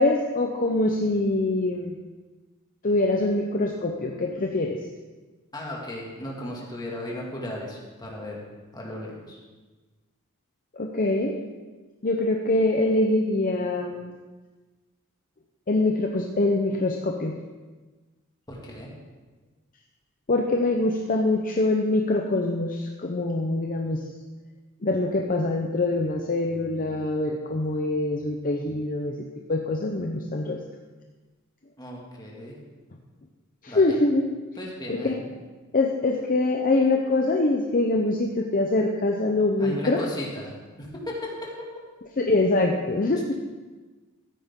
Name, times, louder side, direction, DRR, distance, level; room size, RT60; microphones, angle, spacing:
voice 1, 0.0-1.9 2.8-4.8 10.7-11.4 12.0-14.2 15.7-17.3 20.3-24.0 24.8-29.2 29.5-30.6 33.6-34.3 34.9-35.2 35.7-40.1 42.2-43.3, left 2 dB, 40° left, 1 dB, 0.8 m, -24 dB
voice 2, 5.5-8.4 8.7-9.4 18.5-18.9 31.8-32.6 33.7-34.0 34.5-35.3 39.6-41.5, left 1 dB, 20° left, -3 dB, 2.3 m, -36 dB
13.5 x 9.1 x 3.8 m, 1.3 s
head